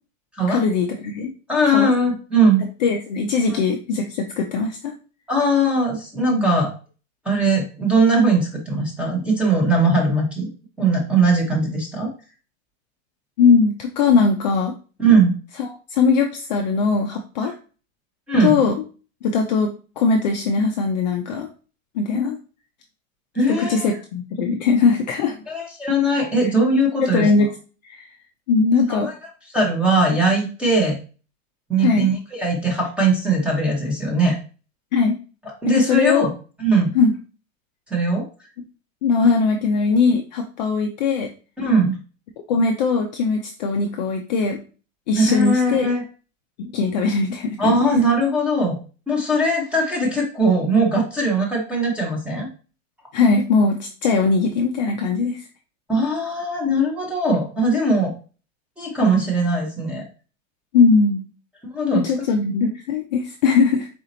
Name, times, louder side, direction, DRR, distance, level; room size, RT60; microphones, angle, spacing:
voice 1, 0.5-1.3 1.7-1.9 2.8-4.9 6.3-6.5 13.4-14.7 15.6-17.5 18.4-18.8 19.2-21.5 21.9-22.4 23.5-25.3 27.1-27.5 27.8-28.1 28.5-29.1 31.8-32.1 34.9-35.2 35.7-36.3 36.9-37.1 39.0-41.3 42.5-44.6 45.1-45.9 46.6-47.8 53.1-55.4 60.7-61.2 61.9-63.9, left 4 dB, 35° left, 2 dB, 0.4 m, -20 dB
voice 2, 1.5-2.6 3.5-3.6 5.3-6.7 7.2-10.5 10.8-12.1 15.0-15.3 17.4-17.5 18.3-18.5 23.4-23.9 25.5-27.3 28.9-29.1 29.5-31.0 31.7-34.3 35.6-36.3 36.6-36.9 37.9-38.2 41.6-41.9 45.2-46.0 47.6-48.8 49.1-52.5 55.9-58.1 58.8-60.0 61.7-62.0, right 2 dB, 5° right, -1 dB, 0.7 m, -20 dB
4.2 x 2.8 x 3.8 m, 0.36 s
supercardioid pair, 160°, 40 cm